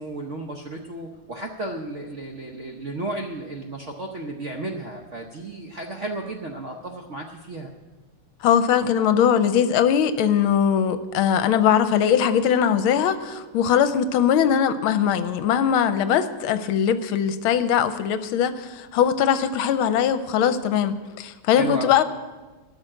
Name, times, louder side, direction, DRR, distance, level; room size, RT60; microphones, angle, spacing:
voice 1, 0.0-7.7 21.5-21.9, right 2 dB, 60° right, 2 dB, 0.8 m, -33 dB
voice 2, 8.4-22.0, left 8 dB, 80° left, 12 dB, 1.5 m, -21 dB
13.0 x 6.4 x 8.9 m, 1.3 s
omnidirectional pair, 2.4 m